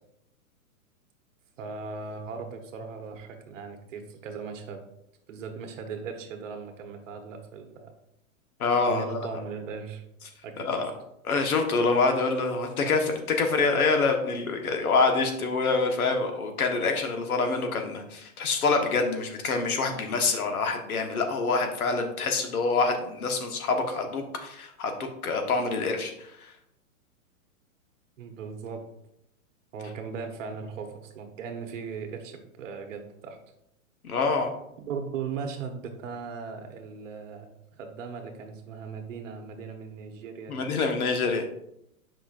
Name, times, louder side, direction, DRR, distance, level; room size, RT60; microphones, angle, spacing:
voice 1, 1.6-4.8 5.3-7.9 8.8-10.0 10.4-10.8 14.6-14.9 28.2-28.8 29.7-33.4 34.8-37.5 37.7-40.6, right 5 dB, 60° right, 5 dB, 1.3 m, -38 dB
voice 2, 8.6-9.4 10.6-10.9 11.2-26.5 34.0-34.5 40.5-41.4, left 4 dB, 90° left, 4 dB, 1.3 m, -26 dB
7.8 x 5.5 x 2.5 m, 0.79 s
hypercardioid pair, 150°, 42 cm